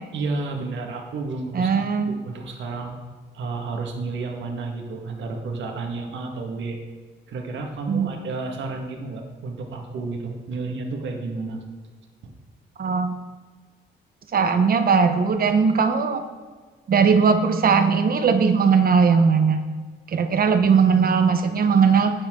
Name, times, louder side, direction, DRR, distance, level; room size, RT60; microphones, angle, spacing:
voice 1, 0.1-3.0 3.3-6.8 7.3-11.6, right 3 dB, 70° right, 2 dB, 1.8 m, -31 dB
voice 2, 1.5-2.2 7.9-8.1 12.8-13.3 14.3-16.2 16.9-19.6 20.1-22.1, right 5 dB, 50° right, 7 dB, 1.1 m, -19 dB
12.5 x 8.9 x 3.8 m, 1.5 s
cardioid pair, 90°, 20 cm